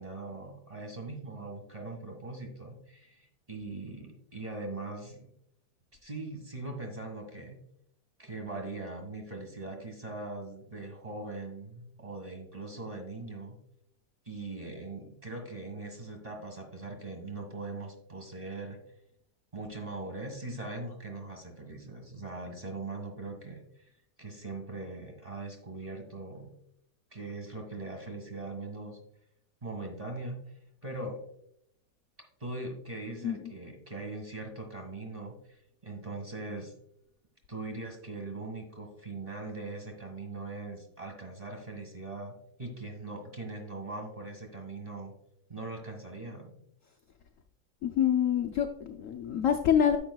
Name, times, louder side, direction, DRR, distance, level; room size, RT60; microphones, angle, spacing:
voice 1, 0.0-5.2 6.0-7.6 8.2-13.6 14.2-18.8 19.5-23.9 24.2-26.5 27.1-29.0 29.6-30.4 30.8-31.2 32.4-36.7 37.5-45.1 45.5-46.6, right 2 dB, 20° right, 1 dB, 1.6 m, -41 dB
voice 2, 47.8-50.0, left 9 dB, 75° left, 5 dB, 0.7 m, -26 dB
10.0 x 7.5 x 2.2 m, 0.75 s
omnidirectional pair, 2.0 m